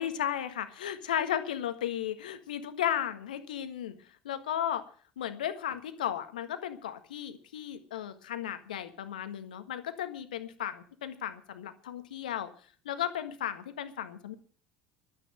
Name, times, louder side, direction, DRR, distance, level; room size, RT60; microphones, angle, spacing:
voice 1, 0.0-3.9 4.2-4.8 5.2-12.5 12.8-14.3, left 10 dB, 75° left, 10 dB, 1.6 m, -35 dB
12.0 x 9.8 x 8.8 m, 0.43 s
figure-of-eight pair, 65°, 4 cm